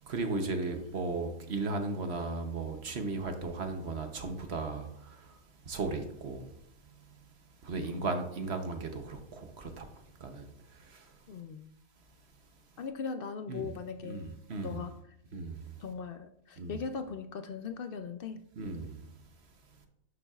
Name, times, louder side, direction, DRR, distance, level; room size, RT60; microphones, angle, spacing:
voice 1, 0.1-5.4 5.7-6.5 7.6-9.9 10.2-10.5 10.7-11.1 13.5-13.7 14.0-14.8 15.3-15.7 16.6-16.7 18.6-19.0, right 3 dB, 55° right, 1.1 m, -36 dB
voice 2, 11.3-11.7 12.8-14.4 14.6-15.1 15.8-18.4, left 5 dB, 65° left, 0.5 m, -39 dB
11.0 x 6.9 x 2.4 m
omnidirectional pair, 1.4 m